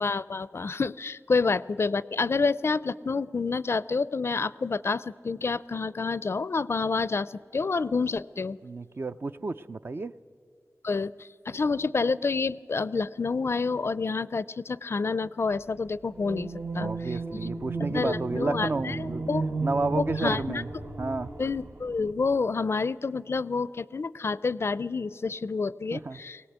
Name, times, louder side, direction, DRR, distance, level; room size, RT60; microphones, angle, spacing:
voice 1, 0.0-8.6 10.8-17.5 17.9-19.5 19.9-20.6 21.4-26.4, left 4 dB, 55° left, 18 dB, 0.4 m, -28 dB
voice 2, 8.6-10.1 16.8-19.2 19.6-20.7 21.0-21.3 25.9-26.2, right 3 dB, 45° right, 11 dB, 0.5 m, -31 dB
sound 1, 16.1-22.1, right 3 dB, 65° right, 1.8 m, -34 dB
20.0 x 17.5 x 8.0 m, 2.1 s
wide cardioid pair, 65°, 5 cm